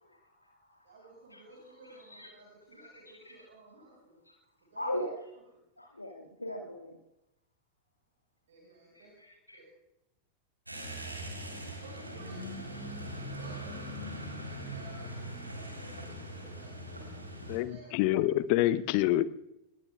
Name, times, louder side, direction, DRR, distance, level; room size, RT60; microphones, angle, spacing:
voice 1, 0.0-2.3 2.7-3.3 4.2-4.3 4.7-5.2 5.8-7.0 8.9-9.6, equal, 85° left, 1 dB, 1.7 m, -41 dB
voice 2, 0.8-4.2 4.6-4.9 5.3-5.4 8.5-9.1 9.5-9.6 11.8-12.8 13.3-13.9 14.3-15.1 15.5-17.1 17.5-18.2, right 2 dB, 65° right, -2 dB, 5.4 m, -54 dB
sound 1, 10.7-17.6, equal, 85° right, 3.7 m, -41 dB
voice 3, 17.5-19.3, left 14 dB, 45° left, 16 dB, 0.8 m, -27 dB
26.5 x 21.0 x 2.3 m, 0.90 s
figure-of-eight pair, 90°, 0 cm